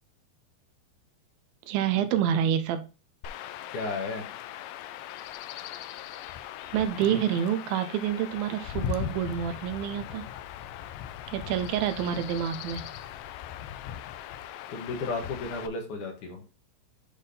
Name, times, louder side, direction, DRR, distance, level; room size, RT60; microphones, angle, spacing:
voice 1, 1.7-2.9 6.7-10.3 11.3-12.9, right 9 dB, 80° right, 8 dB, 2.5 m, -28 dB
Chirp tweet / Wind / Stream, 3.2-15.7, left 10 dB, 80° left, 1.9 m, -39 dB
voice 2, 3.7-4.3 14.7-16.4, left 3 dB, 65° left, 2 dB, 2.7 m, -33 dB
8.6 x 3.6 x 4.0 m, 0.32 s
omnidirectional pair, 4.2 m